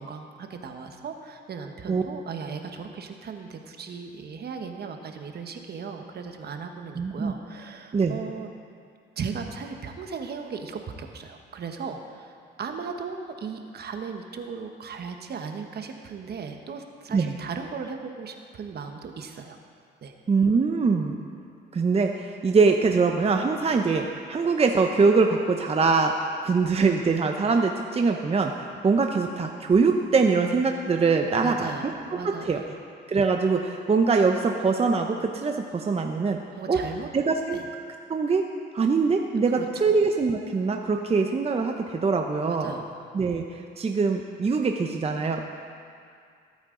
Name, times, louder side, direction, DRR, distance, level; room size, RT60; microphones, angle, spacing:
voice 1, 0.0-8.5 9.2-19.6 20.0-20.1 31.4-32.8 36.6-37.1 37.5-37.7 39.5-39.9 42.5-43.1, right 5 dB, 55° right, 5 dB, 1.2 m, -37 dB
voice 2, 7.0-7.3 7.9-8.2 17.1-17.3 20.3-21.2 21.7-26.1 26.4-31.9 32.2-32.6 33.1-36.4 36.7-36.8 37.1-37.6 38.1-38.4 38.7-42.7 43.1-43.4 43.8-45.4, right 4 dB, 30° right, 3 dB, 0.8 m, -23 dB
21.5 x 8.9 x 3.9 m, 2.3 s
cardioid pair, 90°, 20 cm